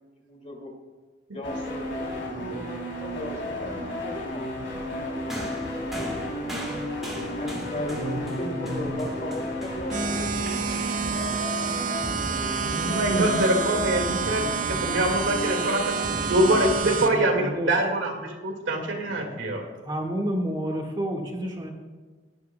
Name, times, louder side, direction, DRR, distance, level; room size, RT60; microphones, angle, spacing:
voice 1, 0.2-0.7 1.3-4.4 4.9-6.3 7.3-10.3, left 1 dB, 35° left, 1 dB, 2.2 m, -37 dB
sound 1, 1.4-16.8, left 1 dB, 75° left, 3.3 m, -33 dB
sound 2, 5.3-12.8 13.8-13.9, equal, ahead, 2.3 m, -40 dB
voice 2, 7.9-8.4 8.7-8.8 12.6-15.8 16.3-19.6, right 1 dB, 85° right, 2 dB, 2.0 m, -25 dB
sound 3, 9.9-17.1, right 6 dB, 40° right, 0.7 m, -29 dB
voice 3, 16.8-17.7 19.8-21.7, equal, 20° right, 0 dB, 1.6 m, -30 dB
17.5 x 10.5 x 2.3 m, 1.4 s
head